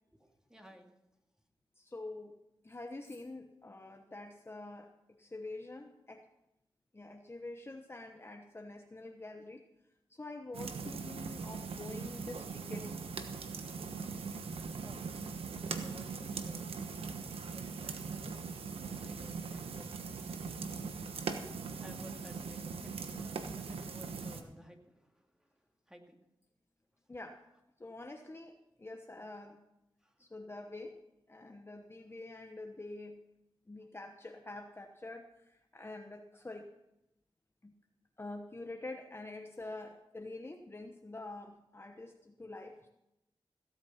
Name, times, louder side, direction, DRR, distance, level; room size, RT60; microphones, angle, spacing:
voice 1, 0.1-0.9 14.8-16.7 17.5-19.9 21.8-25.5 25.9-26.2 30.0-30.1 33.8-33.9, equal, 5° right, 3 dB, 2.4 m, -56 dB
voice 2, 1.8-2.4 2.6-6.2 6.9-9.6 10.1-12.9 27.1-27.4 27.8-29.6 30.2-31.0 31.3-33.2 33.7-36.7 37.6-37.7 38.2-42.9, left 2 dB, 25° left, 5 dB, 1.0 m, -46 dB
sound 1, 10.5-24.4, right 5 dB, 85° right, 1.2 m, -41 dB
16.0 x 8.7 x 5.7 m, 0.90 s
cardioid pair, 55°, 10 cm